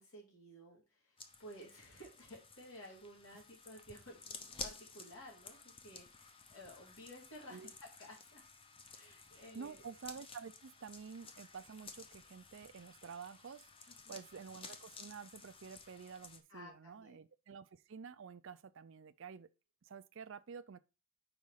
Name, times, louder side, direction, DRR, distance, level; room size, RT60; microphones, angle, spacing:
voice 1, 0.0-8.5 8.9-9.8 13.9-14.2 16.5-17.2, equal, 70° left, 2.5 m, -55 dB
sound 1, 1.2-16.4, left 4 dB, 25° left, 0.7 m, -54 dB
voice 2, 9.3-19.5 19.8-20.8, right 6 dB, 60° right, 0.4 m, -50 dB
5.0 x 4.9 x 5.6 m
head